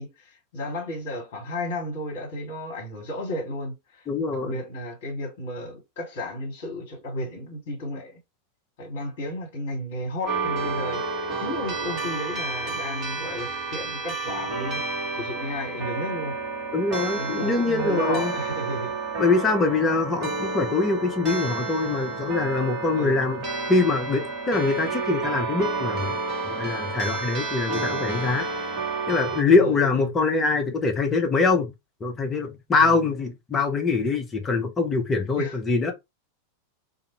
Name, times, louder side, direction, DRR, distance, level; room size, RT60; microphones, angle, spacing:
voice 1, 0.0-4.1 4.4-8.2 8.8-11.0 11.4-14.8 15.1-16.3 17.1-19.0 22.9-23.2 29.5-30.1 32.7-33.1 35.3-35.6, left 1 dB, 45° left, 1.3 m, -33 dB
voice 2, 4.1-4.6 16.7-18.3 19.2-23.4 23.7-26.1 26.5-28.5 29.1-31.7 32.0-35.9, left 3 dB, 20° left, 0.8 m, -23 dB
sound 1, 10.2-29.4, right 4 dB, 35° right, 1.4 m, -30 dB
2.6 x 2.5 x 2.9 m
figure-of-eight pair, 90°, 0 cm